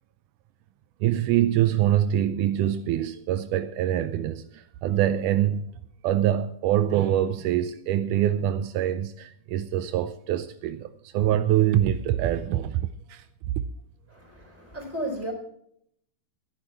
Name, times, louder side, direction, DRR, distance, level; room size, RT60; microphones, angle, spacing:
voice 1, 1.0-5.6 6.0-13.6, right 11 dB, 90° right, 1.8 m, -25 dB
voice 2, 14.1-15.3, right 1 dB, 5° right, 3.4 m, -34 dB
13.0 x 11.0 x 4.5 m
omnidirectional pair, 4.3 m